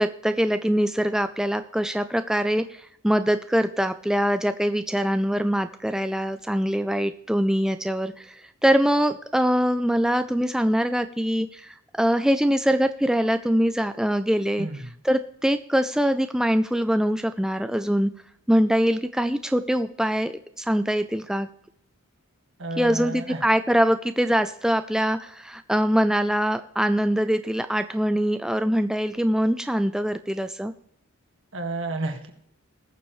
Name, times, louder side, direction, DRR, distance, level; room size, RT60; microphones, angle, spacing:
voice 1, 0.0-14.7 15.0-18.1 18.5-21.5 22.8-23.1 23.4-30.7, equal, 5° right, 9 dB, 0.3 m, -23 dB
voice 2, 14.6-14.9 22.6-23.4 31.5-32.3, right 2 dB, 60° right, 5 dB, 1.9 m, -31 dB
20.5 x 7.2 x 3.2 m, 0.72 s
head